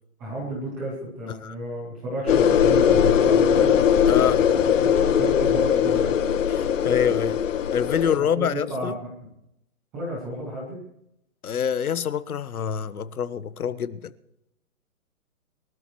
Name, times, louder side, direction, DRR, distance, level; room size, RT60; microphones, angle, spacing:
voice 1, 0.2-3.7 4.7-6.2 8.2-8.9 9.9-10.8, equal, ahead, 0.5 m, -32 dB
sound 1, 2.3-8.2, left 8 dB, 60° left, 1.3 m, -20 dB
voice 2, 4.1-4.4 6.5-7.4 7.7-9.0 11.4-14.1, left 8 dB, 80° left, 1.2 m, -26 dB
24.0 x 13.0 x 3.1 m
hypercardioid pair, 160°, 43 cm